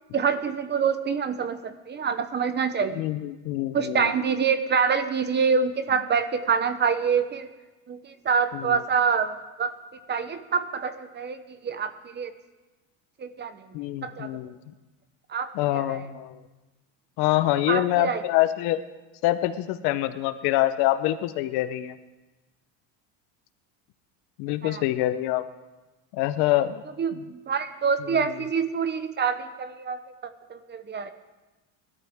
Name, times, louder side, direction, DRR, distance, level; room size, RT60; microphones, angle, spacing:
voice 1, 0.1-3.0 3.7-7.5 7.9-9.7 10.1-12.3 13.2-13.6 14.0-14.3 15.3-16.0 17.7-18.2 24.6-24.8 27.0-31.1, right 6 dB, 25° right, 11 dB, 0.8 m, -26 dB
voice 2, 2.9-4.1 8.5-8.8 13.7-14.6 15.5-16.4 17.2-18.8 19.2-22.0 24.4-25.4 26.1-26.8 28.1-28.3, left 15 dB, 70° left, 11 dB, 1.0 m, -25 dB
21.0 x 13.0 x 3.6 m, 1.1 s
cardioid pair, 130°, 41 cm